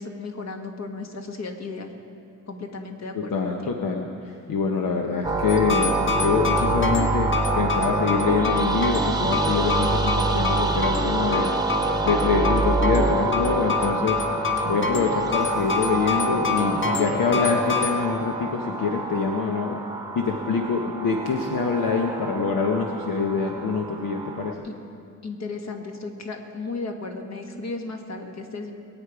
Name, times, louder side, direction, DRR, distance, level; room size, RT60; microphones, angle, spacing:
voice 1, 0.0-1.9 2.5-3.7 24.6-24.7 25.2-28.7, left 3 dB, 55° left, 3 dB, 1.6 m, -35 dB
voice 2, 3.1-11.5 12.0-14.2 14.6-19.8 20.1-24.6, left 5 dB, 85° left, 1 dB, 1.0 m, -25 dB
sound 1, 5.2-24.5, right 3 dB, 10° right, 0.9 m, -26 dB
sound 2, 5.5-18.0, left 5 dB, 35° left, 1.6 m, -28 dB
22.5 x 8.6 x 4.8 m, 2.5 s
cardioid pair, 95°, 33 cm